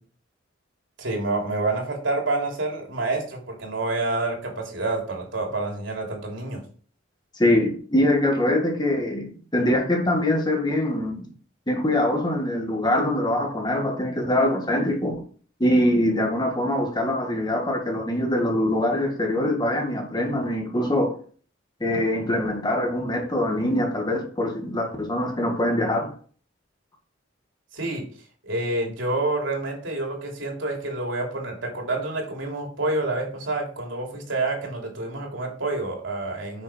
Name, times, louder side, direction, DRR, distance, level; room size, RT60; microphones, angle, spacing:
voice 1, 1.0-6.6 27.7-28.1 28.4-36.6, right 2 dB, 80° right, 3.5 m, -28 dB
voice 2, 7.4-11.3 11.7-15.2 15.6-21.1 21.8-26.1, left 1 dB, 20° left, 1.9 m, -23 dB
9.0 x 6.4 x 4.6 m
head